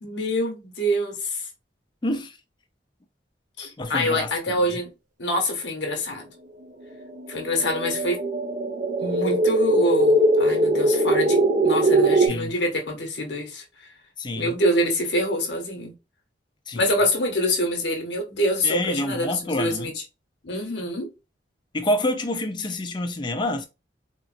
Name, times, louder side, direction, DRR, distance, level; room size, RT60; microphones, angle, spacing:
voice 1, 0.0-1.5 3.6-4.9 5.2-6.3 7.3-8.2 9.0-13.9 14.4-15.9 16.7-20.0 20.4-21.1, left 1 dB, 75° left, 0.9 m, -26 dB
voice 2, 2.0-2.4 3.8-4.6 12.3-12.5 14.2-14.5 16.7-16.9 18.6-19.9 21.7-23.7, left 1 dB, 25° left, 0.4 m, -27 dB
sound 1, 7.1-12.3, right 1 dB, 45° right, 0.5 m, -21 dB
3.8 x 2.0 x 2.5 m
head